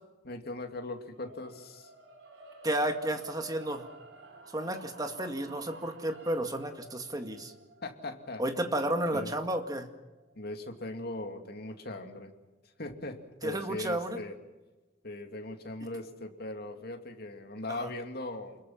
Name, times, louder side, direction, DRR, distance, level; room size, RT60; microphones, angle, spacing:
voice 1, 0.2-1.9 7.8-8.4 9.1-9.3 10.3-12.3 12.8-14.4 15.0-18.6, left 2 dB, 55° left, 5 dB, 2.7 m, -39 dB
sound 1, 1.1-11.3, right 2 dB, 70° right, 5.2 m, -53 dB
voice 2, 2.6-3.9 4.5-7.5 8.4-9.9 13.4-14.2 17.7-17.9, right 1 dB, 20° right, 6 dB, 2.1 m, -32 dB
29.0 x 22.0 x 6.0 m, 1.1 s
head